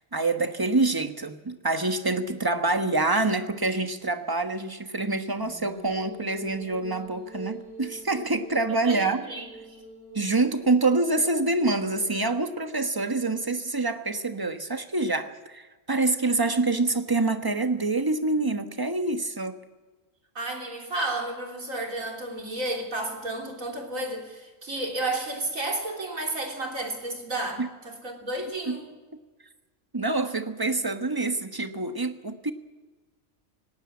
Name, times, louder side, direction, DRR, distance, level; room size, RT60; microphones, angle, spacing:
voice 1, 0.1-9.2 10.1-19.5 27.6-27.7 28.7-28.8 29.9-32.5, right 3 dB, 15° right, 7 dB, 1.2 m, -26 dB
sound 1, 5.4-12.8, right 3 dB, 50° left, 8.1 m, -45 dB
voice 2, 8.9-9.8 20.4-28.9, right 2 dB, 75° right, 1 dB, 3.8 m, -32 dB
18.5 x 18.0 x 8.5 m, 1.3 s
omnidirectional pair, 1.4 m